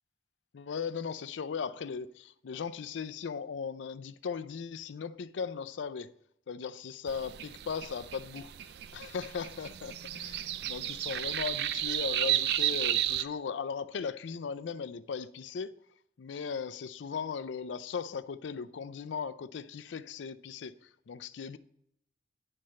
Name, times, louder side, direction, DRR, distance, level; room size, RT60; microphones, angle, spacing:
voice 1, 0.5-6.1 6.5-8.5 8.9-15.7 16.2-21.6, left 6 dB, 90° left, 0.4 m, -38 dB
sound 1, 7.1-13.2, right 12 dB, 65° right, 0.3 m, -33 dB
9.4 x 4.4 x 6.3 m
head